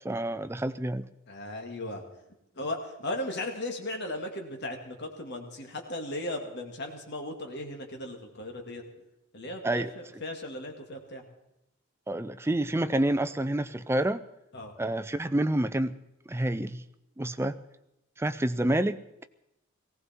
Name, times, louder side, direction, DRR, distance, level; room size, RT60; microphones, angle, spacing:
voice 1, 0.0-1.0 9.6-9.9 12.1-14.2 14.8-16.0 16.3-16.8 17.2-17.6 18.2-19.0, right 1 dB, 10° right, 12 dB, 0.5 m, -28 dB
voice 2, 1.3-2.0 2.6-8.8 9.3-11.2 14.5-14.7, left 1 dB, 50° left, 3 dB, 2.4 m, -36 dB
19.0 x 16.5 x 4.5 m, 0.86 s
head